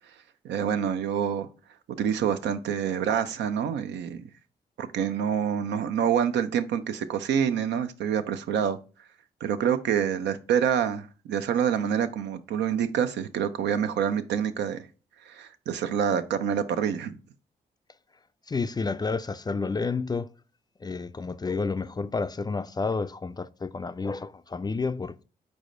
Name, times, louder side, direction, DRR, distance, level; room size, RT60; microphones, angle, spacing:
voice 1, 0.4-1.5 2.0-4.2 4.8-8.8 9.4-14.9 15.3-17.2, right 8 dB, 75° right, 0.5 m, -27 dB
voice 2, 18.5-20.3 20.8-25.2, left 4 dB, 25° left, 0.3 m, -30 dB
4.7 x 4.2 x 2.5 m
supercardioid pair, 40°, 18 cm